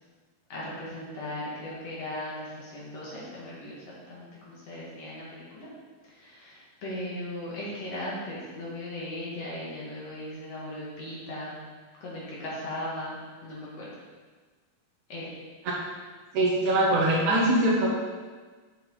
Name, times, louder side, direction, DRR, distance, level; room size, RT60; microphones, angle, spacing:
voice 1, 0.5-5.7 6.1-11.6 12.0-13.9 15.1-15.4, left 1 dB, 50° left, -6 dB, 2.6 m, -38 dB
voice 2, 16.3-18.0, right 1 dB, 65° right, -4 dB, 2.2 m, -22 dB
8.1 x 6.4 x 3.9 m, 1.4 s
omnidirectional pair, 4.2 m